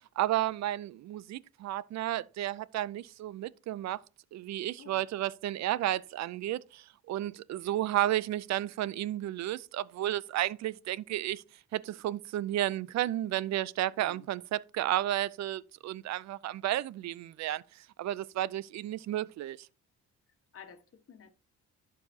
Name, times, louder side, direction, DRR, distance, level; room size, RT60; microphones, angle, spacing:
voice 1, 0.2-4.0 4.3-11.4 11.7-17.6 18.0-19.6, right 13 dB, 65° right, 0.5 m, -32 dB
voice 2, 13.9-14.3 20.5-21.3, left 7 dB, 45° left, 1.5 m, -52 dB
11.5 x 4.8 x 2.8 m
cardioid pair, 90°, 30 cm